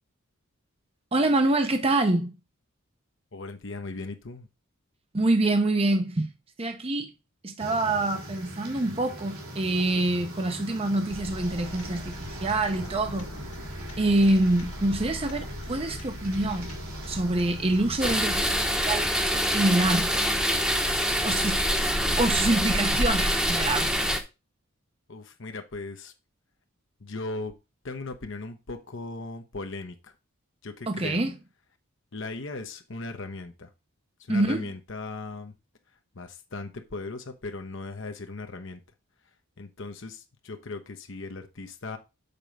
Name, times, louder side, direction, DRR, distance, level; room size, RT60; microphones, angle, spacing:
voice 1, 1.1-2.3 5.1-6.3 6.6-7.1 7.4-13.3 14.0-16.7 17.1-19.1 19.5-20.2 21.2-21.6 22.2-24.1 30.9-31.3 34.3-34.7, right 2 dB, 25° right, 0.7 m, -26 dB
voice 2, 3.3-4.5 25.1-26.1 27.0-27.5 27.8-30.1 30.6-31.2 32.1-33.7 34.2-35.5 36.1-38.8 39.6-42.0, left 3 dB, 60° left, 0.9 m, -38 dB
sound 1, 7.6-18.2, right 1 dB, 85° right, 2.7 m, -41 dB
sound 2, 11.1-23.1, left 1 dB, 85° left, 1.8 m, -41 dB
sound 3, 18.0-24.2, equal, 5° right, 0.9 m, -25 dB
6.8 x 4.5 x 5.2 m
head